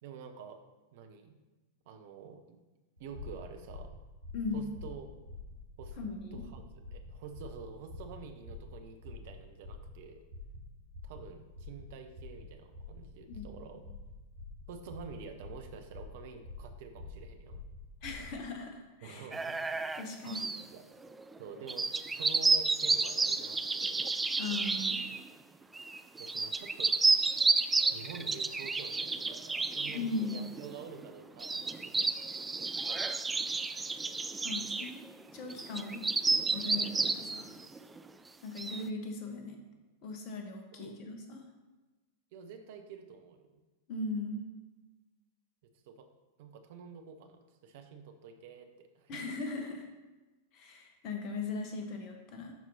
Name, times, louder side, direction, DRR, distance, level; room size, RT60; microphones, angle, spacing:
voice 1, 0.0-0.6 0.9-1.3 1.9-2.6 3.0-3.9 4.5-5.1 5.8-6.0 6.3-6.6 6.9-10.2 11.0-13.9 14.7-17.6 19.0-19.6 20.2-20.8 21.4-24.0 26.2-26.9 27.9-32.1 40.7-41.0 42.3-43.6 45.7-46.1 46.4-49.1, right 6 dB, 50° right, 6 dB, 0.8 m, -48 dB
sound 1, 3.0-18.4, left 3 dB, 75° right, 2.2 m, -47 dB
voice 2, 6.0-6.4 13.3-13.4 18.0-19.3 19.9-20.5 24.4-25.0 29.9-30.5 34.4-35.0 35.3-36.0 36.5-37.5 38.4-39.6 40.0-41.4 43.9-44.4 49.1-49.9 50.5-52.5, left 3 dB, 40° left, 3 dB, 1.2 m, -38 dB
sound 2, 19.3-20.6 21.0-21.4 21.7-25.3 25.7-38.1 38.6-38.8, right 3 dB, 10° right, 0.3 m, -31 dB
12.0 x 4.5 x 2.8 m, 1.2 s
figure-of-eight pair, 90°, 0 cm